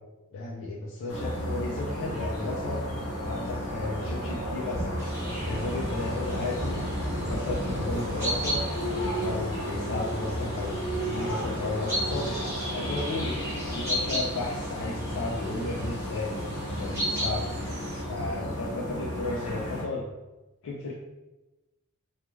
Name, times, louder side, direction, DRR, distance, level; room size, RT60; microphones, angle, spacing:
voice 1, 0.3-2.8 3.2-5.0 5.3-6.8 7.1-8.6 9.0-12.4 12.7-13.4 13.7-16.3 16.7-17.6 18.0-20.1 20.6-20.9, left 2 dB, 60° left, -4 dB, 0.4 m, -34 dB
sound 1, 1.1-19.8, equal, 80° left, 0.8 m, -33 dB
sound 2, 3.2-16.6, equal, 30° right, 0.3 m, -39 dB
sound 3, 5.0-18.0, equal, 10° right, 1.0 m, -36 dB
2.5 x 2.3 x 3.0 m, 1.1 s
head